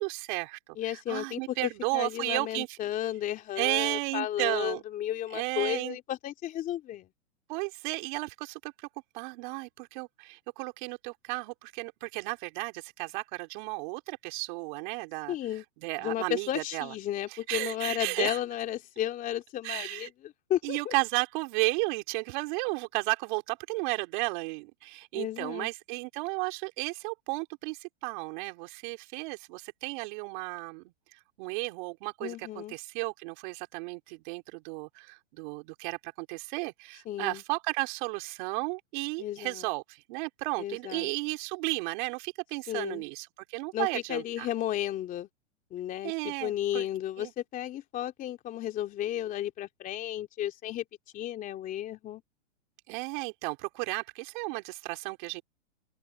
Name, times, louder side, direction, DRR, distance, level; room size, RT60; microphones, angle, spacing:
voice 1, 0.0-2.8 3.6-4.8 5.3-6.0 7.5-8.7 9.1-15.4 15.8-16.9 17.3-18.4 19.6-20.1 20.6-44.5 46.0-46.9 47.2-47.3 52.9-55.4, right 27 dB, 40° right, 3.6 m, -34 dB
voice 2, 0.8-7.1 15.3-15.6 16.0-20.9 25.1-25.7 32.2-32.7 37.1-37.4 39.2-39.7 40.6-41.1 42.7-43.0 43.7-45.3 45.7-50.8 51.1-52.2, left 12 dB, 20° left, 2.9 m, -33 dB
hypercardioid pair, 150°, 37 cm